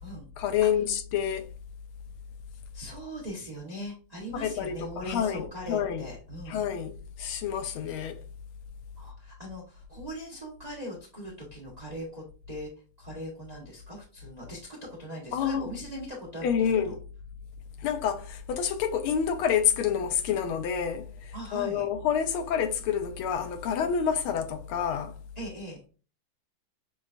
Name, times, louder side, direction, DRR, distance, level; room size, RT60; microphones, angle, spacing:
voice 1, 0.4-1.5 4.4-6.1 6.5-8.2 15.3-15.7 16.4-17.0 17.8-25.2, left 8 dB, 80° left, 1.4 m, -28 dB
voice 2, 2.7-6.6 9.0-12.7 13.0-16.9 21.3-21.9 25.4-25.8, equal, 45° right, 0.5 m, -40 dB
6.2 x 2.2 x 2.4 m
omnidirectional pair, 2.3 m